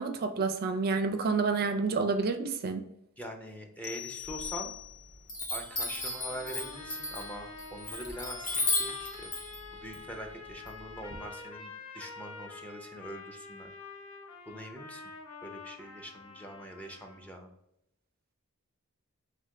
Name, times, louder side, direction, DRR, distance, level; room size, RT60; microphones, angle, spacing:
voice 1, 0.0-2.8, right 4 dB, 45° right, 7 dB, 0.4 m, -29 dB
voice 2, 3.2-4.7 5.5-9.3 9.7-13.7 14.5-15.0 15.4-17.5, equal, 5° left, 3 dB, 0.5 m, -43 dB
sound 1, 3.8-5.4, left 15 dB, 70° left, 0.3 m, -42 dB
Chime, 4.2-4.9 5.3-11.1, left 2 dB, 35° left, 0.9 m, -35 dB
sound 2, 5.7-17.4, left 4 dB, 85° left, 1.0 m, -47 dB
3.6 x 3.2 x 3.7 m, 0.80 s
head